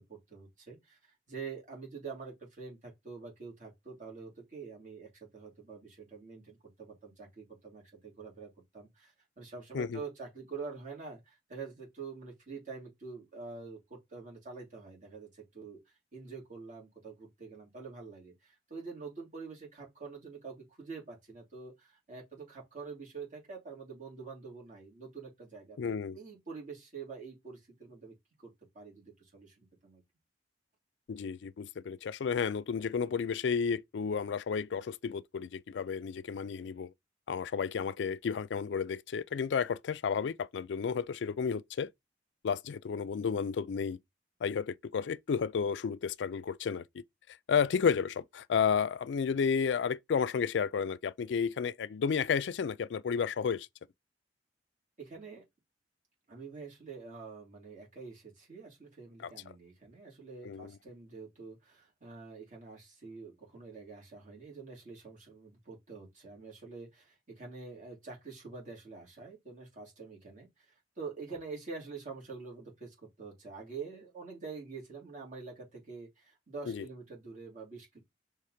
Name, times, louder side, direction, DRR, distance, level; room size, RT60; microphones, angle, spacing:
voice 1, 0.0-15.8 16.1-30.0 55.0-55.4 56.3-78.0, right 4 dB, 45° right, 3.0 m, -46 dB
voice 2, 25.8-26.2 31.1-36.9 37.3-41.9 42.4-44.0 44.4-53.7 59.2-59.3 60.4-60.7 76.7-76.8, left 6 dB, 80° left, 0.4 m, -32 dB
5.6 x 3.4 x 5.0 m
head